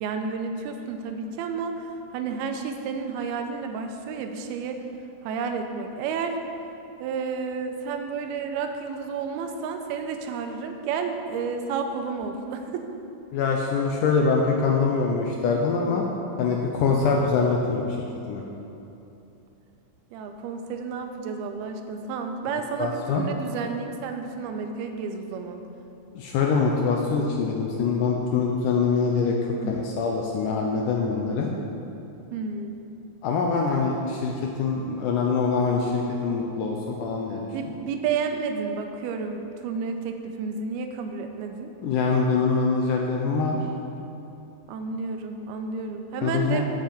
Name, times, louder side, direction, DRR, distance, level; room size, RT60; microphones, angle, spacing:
voice 1, 0.0-1.9 2.1-4.8 5.2-6.4 7.0-12.9 20.1-25.6 29.6-29.8 32.3-32.9 37.5-41.7 44.7-46.6, right 5 dB, 85° right, 5 dB, 2.6 m, -31 dB
voice 2, 13.3-16.1 16.4-17.9 18.3-18.4 22.8-23.2 26.2-31.5 33.2-34.3 34.6-37.7 41.8-43.6 46.2-46.6, left 4 dB, 80° left, 0 dB, 1.9 m, -24 dB
8.0 x 7.7 x 6.9 m, 2.8 s
omnidirectional pair, 4.4 m